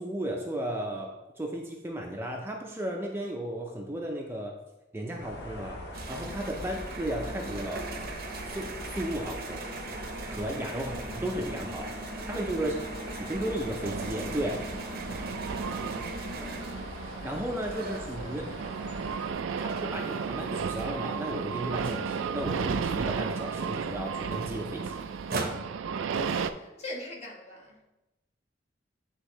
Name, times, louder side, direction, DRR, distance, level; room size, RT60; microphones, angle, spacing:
voice 1, 0.0-4.6 4.9-5.8 6.1-7.9 8.4-9.7 10.3-12.9 13.2-14.6 17.0-18.6 19.6-25.1, right 1 dB, 15° right, 0.5 m, -34 dB
sound 1, 5.2-19.3, left 1 dB, 60° left, 0.9 m, -41 dB
sound 2, 5.9-18.8 19.2-22.6 22.9-23.0 23.2-25.6, right 3 dB, 55° right, 0.7 m, -40 dB
sound 3, 13.8-26.5, right 6 dB, 75° right, 0.3 m, -34 dB
voice 2, 16.0-16.9 26.1-27.8, left 1 dB, 35° left, 1.4 m, -43 dB
9.7 x 3.6 x 3.1 m
head